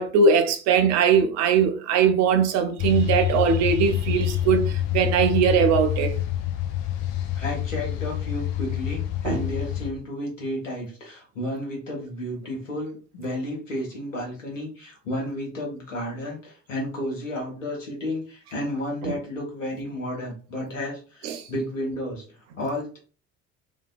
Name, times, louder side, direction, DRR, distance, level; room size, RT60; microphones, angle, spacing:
voice 1, 0.0-6.1 9.2-9.4 19.0-19.2 21.2-21.4, right 6 dB, 45° right, 0.5 m, -21 dB
sound 1, 2.8-9.9, left 12 dB, 55° left, 0.5 m, -27 dB
voice 2, 7.3-23.0, left 1 dB, 85° left, 0.8 m, -32 dB
2.5 x 2.2 x 2.3 m
figure-of-eight pair, 50°, 38 cm